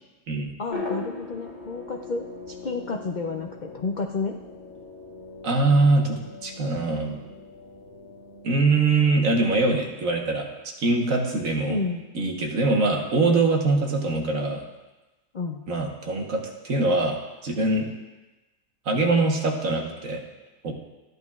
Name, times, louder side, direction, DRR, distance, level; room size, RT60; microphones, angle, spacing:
voice 1, 0.6-4.4 11.7-12.0 15.3-15.6, left 3 dB, 85° left, 2 dB, 0.4 m, -30 dB
sound 1, 0.7-9.8, left 3 dB, 30° left, 1.3 m, -40 dB
voice 2, 5.4-7.2 8.4-11.8 12.1-14.6 15.7-17.2 17.4-17.9 18.8-20.2 20.6-20.7, right 3 dB, 60° right, 1 dB, 1.5 m, -23 dB
13.5 x 11.0 x 2.4 m, 1.1 s
omnidirectional pair, 1.6 m